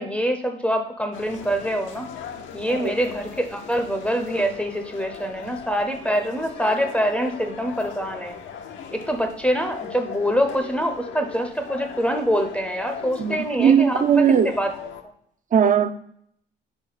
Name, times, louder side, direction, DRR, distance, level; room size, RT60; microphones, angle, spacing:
voice 1, 0.0-2.1 2.5-8.3 8.9-14.2 14.6-14.7, equal, 5° left, 3 dB, 0.6 m, -25 dB
sound 1, 1.1-15.0, left 7 dB, 75° left, 0.7 m, -39 dB
voice 2, 13.2-14.5 15.5-15.9, right 7 dB, 40° right, 11 dB, 0.5 m, -19 dB
5.0 x 3.6 x 5.5 m, 0.66 s
cardioid pair, 90°, 20 cm